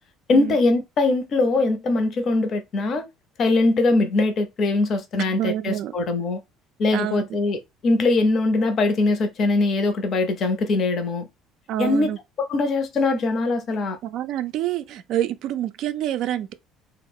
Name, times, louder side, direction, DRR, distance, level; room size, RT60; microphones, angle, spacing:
voice 1, 0.3-3.0 3.4-6.4 6.8-11.3 11.8-12.1 12.4-14.0, left 3 dB, 50° left, 0.5 m, -22 dB
voice 2, 5.2-5.9 6.9-7.3 11.7-12.2 14.0-16.5, right 12 dB, 65° right, 0.3 m, -27 dB
2.3 x 2.0 x 3.4 m
hypercardioid pair, 65°, 0 cm